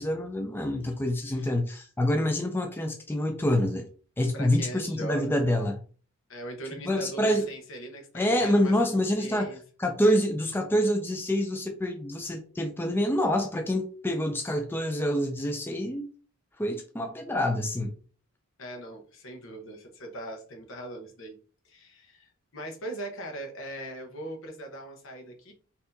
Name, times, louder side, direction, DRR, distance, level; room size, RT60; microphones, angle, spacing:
voice 1, 0.0-3.9 4.2-5.8 6.9-7.5 8.1-9.5 9.8-16.1 16.6-17.9, left 1 dB, 10° left, 0.3 m, -26 dB
voice 2, 4.3-5.4 6.3-8.1 8.3-9.6 18.6-21.4 21.6-25.5, right 1 dB, 65° left, 0.9 m, -40 dB
4.1 x 2.7 x 2.6 m
head